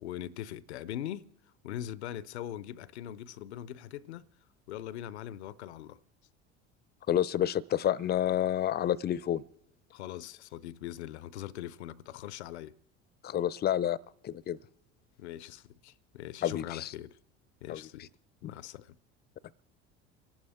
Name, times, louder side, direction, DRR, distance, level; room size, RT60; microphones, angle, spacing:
voice 1, 0.0-1.3 1.6-4.3 4.7-6.0 9.9-12.8 15.2-17.2 17.6-18.1 18.4-19.0, left 12 dB, 80° left, 0.6 m, -41 dB
voice 2, 7.1-9.4 13.2-14.0 14.2-14.6 16.4-16.9 17.7-17.8 18.4-18.5, left 11 dB, 30° left, 0.5 m, -29 dB
29.0 x 11.5 x 3.6 m
hypercardioid pair, 70°, 34 cm